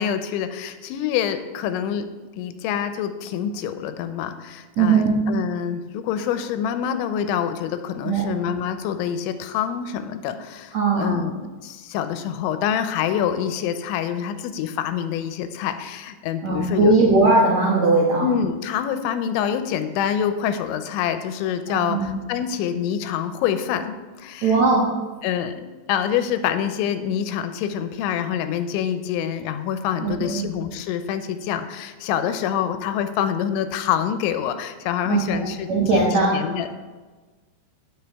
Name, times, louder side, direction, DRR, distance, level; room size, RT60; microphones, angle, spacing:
voice 1, 0.0-2.1 2.4-16.9 18.2-24.6 25.2-36.8, left 9 dB, 85° left, 9 dB, 3.1 m, -26 dB
voice 2, 4.8-5.2 8.0-8.3 10.7-11.2 16.4-18.3 21.7-22.1 24.4-24.9 30.0-30.4 35.1-35.4 35.7-36.3, right 3 dB, 75° right, -4 dB, 1.6 m, -19 dB
16.0 x 6.2 x 3.5 m, 1.3 s
omnidirectional pair, 5.2 m